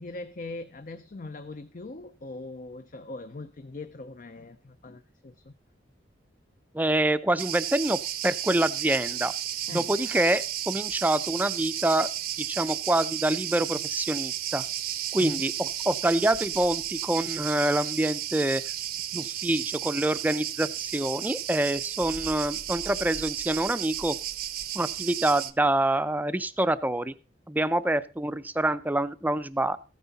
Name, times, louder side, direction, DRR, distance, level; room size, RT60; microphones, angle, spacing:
voice 1, 0.0-5.5 9.7-10.0 15.2-15.5, left 2 dB, 45° left, 10 dB, 0.6 m, -41 dB
voice 2, 6.7-9.3 9.7-12.1 12.4-14.6 15.1-18.6 19.1-24.2 24.7-27.1 27.5-29.8, right 1 dB, 10° right, 14 dB, 0.5 m, -26 dB
Cricket, 7.4-25.5, right 11 dB, 55° right, 0.7 m, -33 dB
14.5 x 9.4 x 4.0 m, 0.33 s
head